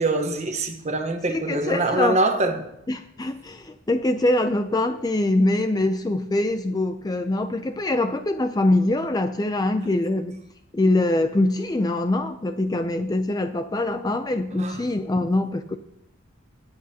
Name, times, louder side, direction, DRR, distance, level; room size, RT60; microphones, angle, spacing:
voice 1, 0.0-2.7 14.6-14.8, right 2 dB, 35° right, 1.1 m, -24 dB
voice 2, 1.3-2.2 2.9-10.4 10.7-15.8, left 2 dB, 20° left, 0.4 m, -23 dB
18.5 x 8.4 x 2.9 m
head